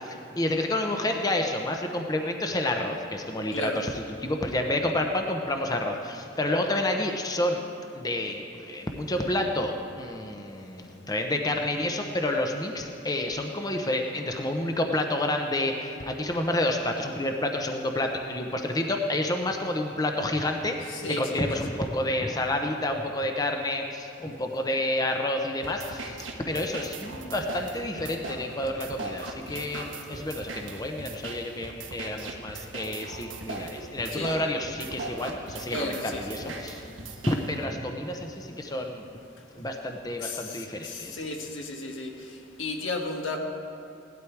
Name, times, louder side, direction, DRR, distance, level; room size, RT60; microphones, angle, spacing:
voice 1, 0.4-7.6 7.9-26.2 26.5-36.8 37.3-39.0 39.6-41.2, left 1 dB, 20° left, 3 dB, 0.7 m, -29 dB
voice 2, 3.5-3.8 20.9-21.6 34.1-34.3 35.7-36.5 40.2-43.4, left 2 dB, 80° left, 2 dB, 1.6 m, -34 dB
sound 1, 25.6-37.6, right 3 dB, 75° right, 1.4 m, -39 dB
17.5 x 12.0 x 4.6 m, 2.7 s
head